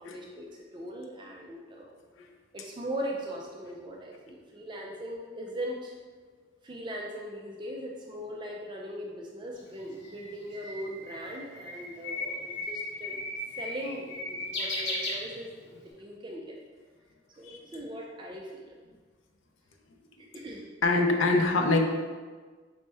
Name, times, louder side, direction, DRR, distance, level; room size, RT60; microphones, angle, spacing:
voice 1, 0.0-1.9 2.5-5.9 6.6-13.2 13.6-16.6 17.4-18.7 20.2-20.6, equal, 25° right, -1 dB, 0.4 m, -39 dB
Bird, 9.6-15.8, left 2 dB, 60° left, 0.9 m, -36 dB
voice 2, 20.8-21.9, left 2 dB, 80° left, 3 dB, 0.5 m, -24 dB
4.2 x 3.1 x 3.3 m, 1.4 s
head